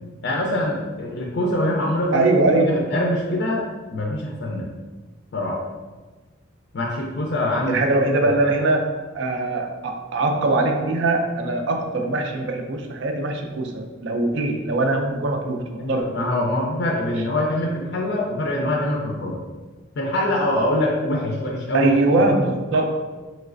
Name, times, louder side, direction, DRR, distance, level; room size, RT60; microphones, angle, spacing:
voice 1, 0.2-2.2 2.6-3.7 3.9-4.7 5.3-5.6 6.7-7.9 15.8-19.4 20.0-21.9, left 1 dB, 55° left, -2 dB, 0.4 m, -24 dB
voice 2, 2.1-2.9 7.7-16.0 21.7-23.0, right 2 dB, 60° right, 4 dB, 0.4 m, -22 dB
3.1 x 3.1 x 2.5 m, 1.3 s
head